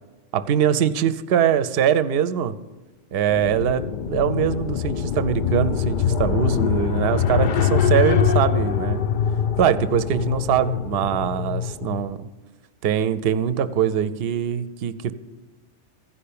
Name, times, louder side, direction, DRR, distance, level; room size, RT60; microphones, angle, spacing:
voice 1, 0.3-2.5 3.1-9.0 9.6-12.2 12.8-15.1, right 9 dB, 60° right, 13 dB, 0.8 m, -22 dB
sound 1, 3.3-12.1, left 8 dB, 60° left, 0.5 m, -23 dB
14.5 x 5.6 x 8.5 m, 1.2 s
omnidirectional pair, 1.2 m